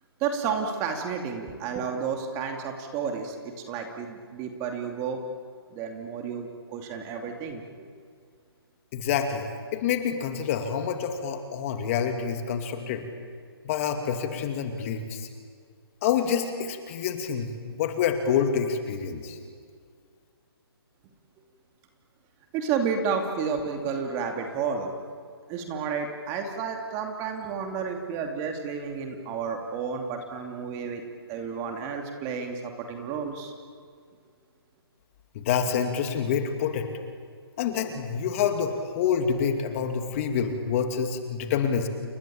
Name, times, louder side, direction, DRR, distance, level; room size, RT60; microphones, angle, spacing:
voice 1, 0.2-5.2 5.7-7.6 22.5-24.9 25.5-31.0 31.3-33.5, right 6 dB, 20° right, 4 dB, 2.7 m, -31 dB
voice 2, 8.9-13.0 13.6-15.3 16.0-19.4 35.3-36.9 37.6-41.9, left 7 dB, 35° left, 6 dB, 2.6 m, -27 dB
29.5 x 23.0 x 8.8 m, 2.1 s
hypercardioid pair, 150°, 13 cm